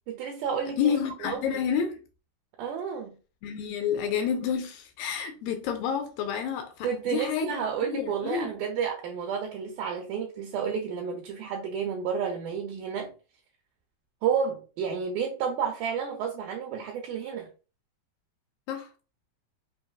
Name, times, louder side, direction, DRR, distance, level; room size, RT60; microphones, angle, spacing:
voice 1, 0.1-0.9 1.2-1.4 2.6-3.2 6.8-13.1 14.2-17.5, right 7 dB, 80° right, 1.8 m, -31 dB
voice 2, 0.8-2.0 3.4-8.5 18.7-18.9, left 7 dB, 85° left, 2.3 m, -29 dB
5.8 x 2.7 x 2.3 m
omnidirectional pair, 4.1 m